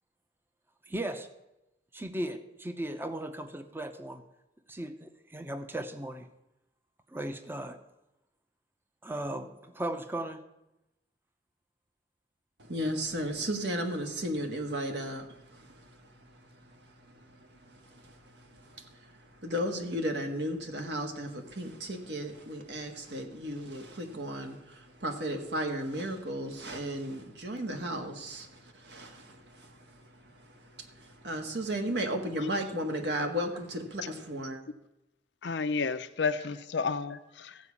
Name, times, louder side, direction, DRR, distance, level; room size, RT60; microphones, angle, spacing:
voice 1, 0.9-1.3 1.9-4.2 4.7-6.3 7.1-7.8 9.0-10.5, right 1 dB, 10° right, 7 dB, 0.7 m, -37 dB
voice 2, 12.6-34.6, equal, 65° right, 4 dB, 1.7 m, -35 dB
voice 3, 35.4-37.6, left 5 dB, 75° left, 11 dB, 0.6 m, -31 dB
14.5 x 4.9 x 8.5 m, 0.92 s
head